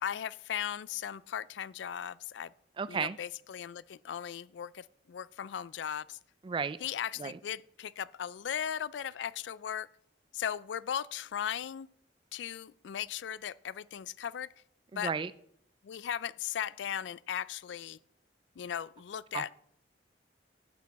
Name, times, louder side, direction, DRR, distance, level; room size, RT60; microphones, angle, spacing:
voice 1, 0.0-2.5 2.9-6.2 6.8-9.9 10.3-11.9 12.3-14.5 14.9-15.1 15.8-18.0 18.6-19.5, left 9 dB, 80° left, 0.4 m, -37 dB
voice 2, 2.8-3.2 6.4-6.8 7.2-7.4 14.9-15.3 19.3-19.4, right 5 dB, 30° right, 0.3 m, -33 dB
11.0 x 8.5 x 4.1 m
head